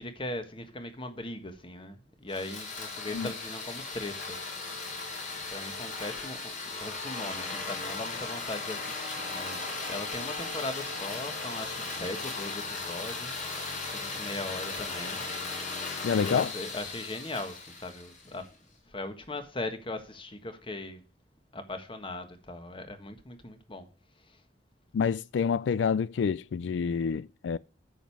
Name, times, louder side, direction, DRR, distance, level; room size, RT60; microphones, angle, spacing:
voice 1, 0.0-4.3 5.4-6.5 6.8-9.6 9.9-13.5 13.9-15.2 16.1-18.4 18.9-21.0 21.5-23.9, left 2 dB, 30° left, 1.5 m, -39 dB
sound 1, 2.3-18.5, left 3 dB, 45° left, 4.1 m, -37 dB
voice 2, 16.0-16.5 24.9-27.6, left 6 dB, 85° left, 0.4 m, -28 dB
9.2 x 7.3 x 4.6 m
head